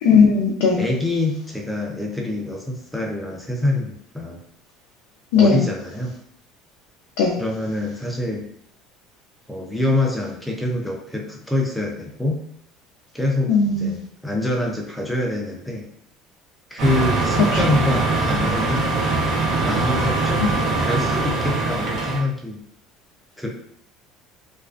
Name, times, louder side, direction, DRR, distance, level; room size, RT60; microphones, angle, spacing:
voice 1, 0.0-0.8 5.3-5.6 7.2-7.4 13.5-14.0 17.6-17.7 20.5-20.6, left 5 dB, 90° left, -1 dB, 0.4 m, -17 dB
voice 2, 0.7-4.4 5.4-6.1 7.4-8.5 9.5-12.4 13.1-14.0 14.2-15.9 16.7-18.9 19.6-20.4 20.8-22.6 23.4-23.5, left 1 dB, 5° left, 0 dB, 0.5 m, -25 dB
sound 1, 16.8-22.2, right 3 dB, 65° right, 0.8 m, -22 dB
2.4 x 2.2 x 2.3 m, 0.66 s
cardioid pair, 130°, 0 cm